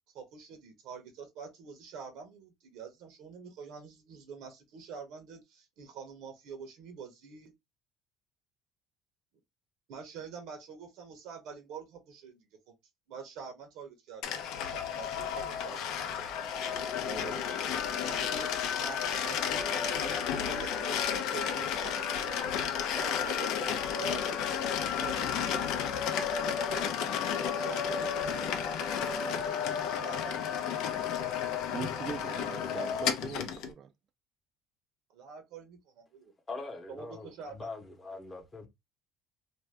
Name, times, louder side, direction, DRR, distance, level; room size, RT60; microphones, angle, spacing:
voice 1, 0.1-7.5 9.9-12.5 13.1-16.4 17.0-17.6 18.0-18.5 18.8-19.6 19.9-21.0 21.3-22.4 22.7-24.4 24.9-25.9 26.4-26.9 27.5-28.5 28.8-31.0 35.1-36.3 36.9-37.7, right 6 dB, 75° right, 0.8 m, -46 dB
sound 1, 14.2-33.7, left 8 dB, 70° left, 0.5 m, -32 dB
voice 2, 31.7-33.9, right 8 dB, 45° right, 0.3 m, -41 dB
voice 3, 36.5-38.7, left 3 dB, 20° left, 0.9 m, -42 dB
2.6 x 2.2 x 3.3 m
cardioid pair, 125°, 0 cm